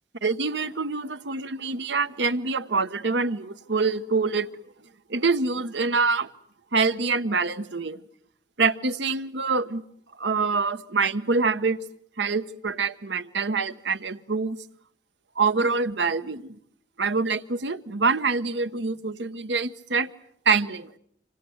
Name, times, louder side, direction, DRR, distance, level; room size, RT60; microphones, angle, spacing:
voice 1, 0.2-4.5 5.1-6.3 6.7-8.0 8.6-9.8 10.2-11.8 12.2-14.6 15.4-16.6 17.0-20.1 20.5-20.9, right 4 dB, 70° right, 1.0 m, -25 dB
26.5 x 26.5 x 7.9 m
head